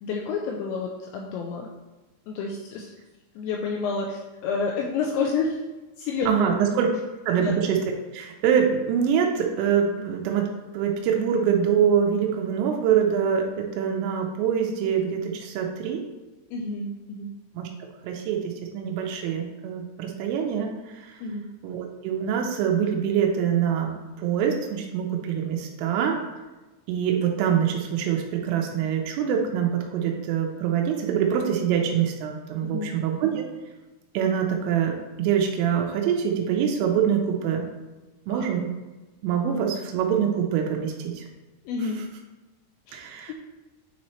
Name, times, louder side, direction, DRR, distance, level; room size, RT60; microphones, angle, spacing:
voice 1, 0.0-1.7 2.3-2.9 3.4-5.6 6.0-6.5 7.4-7.6 16.5-17.3 21.2-21.5 32.6-32.9 38.3-38.4 41.7-42.0 42.9-43.0 43.3-43.4, left 4 dB, 85° left, 0 dB, 2.6 m, -29 dB
voice 2, 6.3-6.9 7.3-7.8 8.1-10.5 10.7-16.0 17.6-17.7 18.0-20.7 21.0-21.1 21.6-26.2 26.9-33.5 34.1-37.7 38.3-38.7 39.2-41.3 42.9-43.3, right 8 dB, 90° right, 2 dB, 3.3 m, -24 dB
9.2 x 4.1 x 3.1 m, 1.2 s
omnidirectional pair, 5.7 m